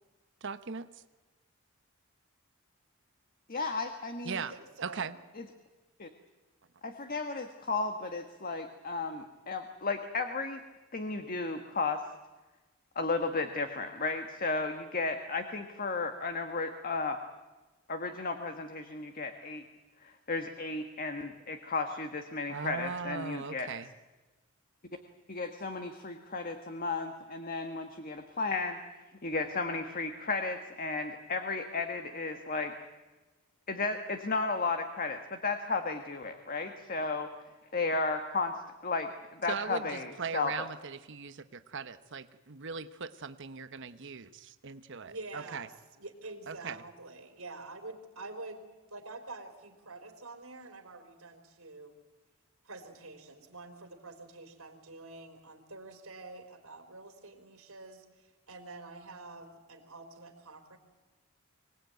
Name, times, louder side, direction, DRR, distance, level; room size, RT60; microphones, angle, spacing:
voice 1, 0.4-0.9 4.2-4.5 4.8-5.2 22.5-23.9 39.5-41.3 41.7-45.7 46.5-46.8, right 5 dB, 60° right, 11 dB, 1.0 m, -39 dB
voice 2, 3.5-4.4 6.0-6.1 6.8-10.6 10.9-12.0 12.9-17.2 17.9-19.6 20.0-23.7 25.3-28.8 29.2-32.7 33.7-37.3 37.7-38.5 38.8-40.7, left 3 dB, 45° left, 6 dB, 1.5 m, -34 dB
voice 3, 4.3-5.1 45.0-51.9 52.6-60.8, right 2 dB, 85° right, 4 dB, 4.1 m, -47 dB
25.0 x 19.0 x 9.2 m, 1.2 s
head